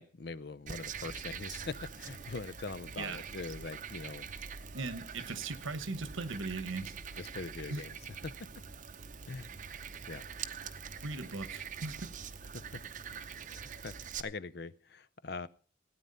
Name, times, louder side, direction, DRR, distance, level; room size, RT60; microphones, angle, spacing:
voice 1, 0.0-4.3 7.2-7.9 8.2-8.5 9.3-10.2 12.5-12.8 13.5-15.5, left 4 dB, 55° left, 17 dB, 0.6 m, -43 dB
Frog, 0.7-14.2, right 6 dB, 40° right, 0.7 m, -44 dB
voice 2, 4.7-7.0 7.7-7.8 11.0-12.0, right 3 dB, 80° right, 13 dB, 1.2 m, -38 dB
16.5 x 9.4 x 5.5 m, 0.43 s
head